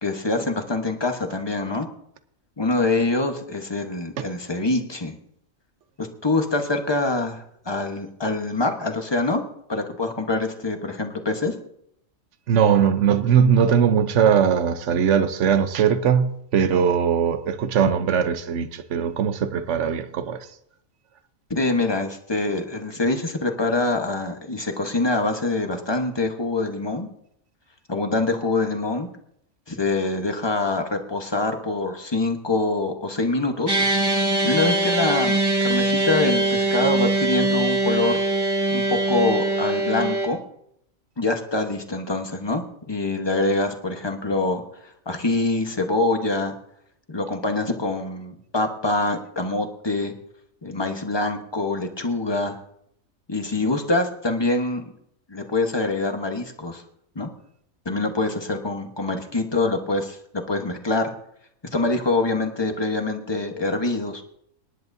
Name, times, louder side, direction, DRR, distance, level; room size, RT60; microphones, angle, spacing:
voice 1, 0.0-1.9 2.6-5.1 6.0-9.4 9.7-11.5 21.5-27.1 27.9-29.1 29.7-33.8 34.4-38.2 38.7-40.4 41.2-46.5 47.1-50.1 50.6-52.6 53.3-54.8 55.3-56.8 57.1-57.3 57.8-61.1 61.7-64.2, left 2 dB, 20° left, 1.1 m, -25 dB
voice 2, 12.5-20.5, right 7 dB, 60° right, 1.1 m, -20 dB
sound 1, 33.7-40.3, right 2 dB, 15° right, 1.6 m, -22 dB
26.0 x 10.5 x 2.7 m
omnidirectional pair, 1.4 m